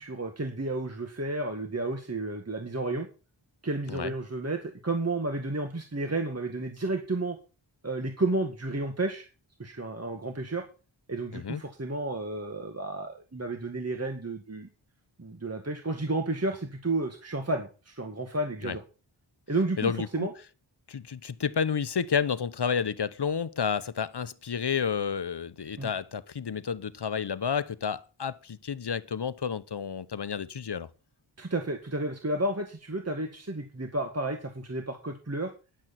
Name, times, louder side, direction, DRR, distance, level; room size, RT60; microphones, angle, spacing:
voice 1, 0.0-3.1 3.6-7.4 7.8-9.3 9.6-10.6 11.1-14.7 15.2-18.8 19.5-20.3 25.8-25.9 31.4-35.5, right 2 dB, 30° right, 2.0 m, -31 dB
voice 2, 11.3-11.6 18.6-18.8 19.8-20.3 20.9-30.9, left 6 dB, 55° left, 0.9 m, -30 dB
12.5 x 10.5 x 4.3 m
wide cardioid pair, 90°, 47 cm